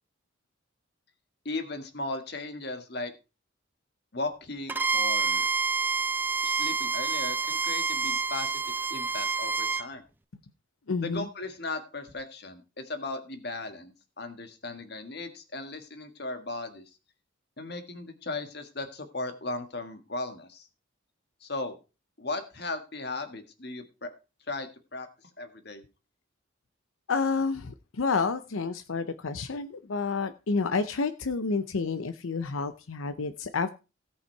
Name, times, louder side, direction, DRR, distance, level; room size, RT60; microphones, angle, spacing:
voice 1, 1.4-3.1 4.1-5.4 6.4-8.5 8.9-10.0 11.0-16.8 17.6-20.7 21.4-21.8 22.2-24.1 24.5-25.1 25.4-25.8, left 2 dB, 50° left, 7 dB, 1.7 m, -37 dB
Bowed string instrument, 4.7-9.9, right 4 dB, 10° right, 0.5 m, -28 dB
voice 2, 10.9-11.3 27.1-33.7, left 4 dB, 85° left, 11 dB, 0.6 m, -29 dB
17.0 x 5.7 x 4.5 m, 0.31 s
head